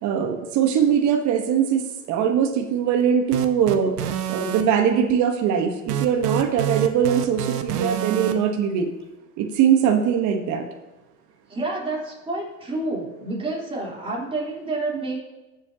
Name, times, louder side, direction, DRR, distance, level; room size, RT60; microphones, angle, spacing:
voice 1, 0.0-4.0 4.3-8.9 9.4-10.7, right 8 dB, 40° right, 4 dB, 1.2 m, -21 dB
sound 1, 3.3-4.6 5.9-8.3, right 11 dB, 80° right, 1.1 m, -27 dB
voice 2, 11.5-15.2, right 2 dB, 10° right, -4 dB, 3.6 m, -29 dB
20.5 x 7.6 x 2.9 m, 1.1 s
hypercardioid pair, 115°, 46 cm